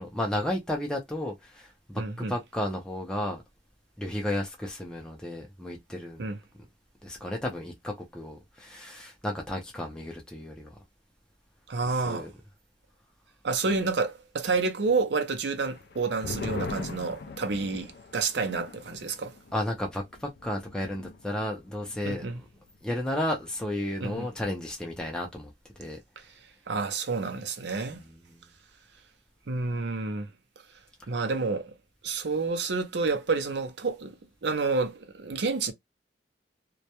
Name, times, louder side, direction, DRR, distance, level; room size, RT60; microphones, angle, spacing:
voice 1, 0.0-3.4 4.0-6.3 7.0-10.7 11.9-12.3 19.5-22.3 22.8-25.5 25.8-26.0 28.0-28.4, left 1 dB, 5° left, 0.5 m, -33 dB
voice 2, 2.0-2.3 6.2-6.4 11.7-12.3 13.4-19.3 22.0-22.4 24.0-24.3 26.7-28.0 29.5-30.3 31.1-31.7 32.0-34.2 34.4-35.7, right 4 dB, 80° right, 0.6 m, -29 dB
sound 1, 15.6-22.6 22.9-23.0 23.3-23.8, left 4 dB, 60° left, 0.3 m, -41 dB
2.3 x 2.1 x 2.8 m
head